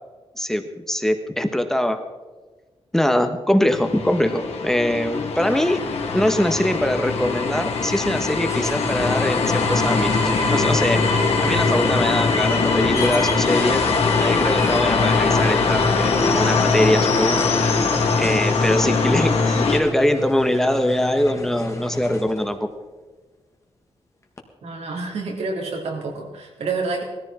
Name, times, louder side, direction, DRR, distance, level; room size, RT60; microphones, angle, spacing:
voice 1, 0.3-2.0 2.9-5.8 6.1-10.1 10.5-11.0 11.4-13.8 14.2-17.4 18.2-22.6, left 1 dB, 5° left, 7 dB, 1.4 m, -22 dB
sound 1, 3.7-19.8, left 4 dB, 75° left, 2.7 m, -21 dB
sound 2, 8.4-22.6 24.4-24.5, left 2 dB, 30° left, 1.8 m, -32 dB
voice 2, 24.6-27.0, right 3 dB, 85° right, 0 dB, 3.9 m, -28 dB
19.5 x 14.0 x 4.4 m, 1.3 s
wide cardioid pair, 130°, 11 cm